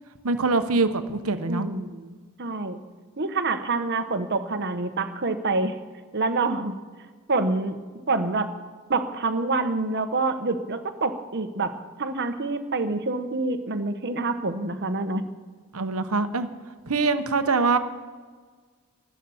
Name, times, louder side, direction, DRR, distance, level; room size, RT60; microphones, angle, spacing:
voice 1, 0.2-1.7 15.7-16.5 16.9-17.8, right 3 dB, 75° right, 9 dB, 1.1 m, -23 dB
voice 2, 1.5-2.8 3.2-5.8 6.1-6.7 7.3-7.8 8.1-8.5 8.9-15.3, right 3 dB, 50° right, 9 dB, 1.1 m, -27 dB
13.0 x 12.0 x 7.2 m, 1.5 s
head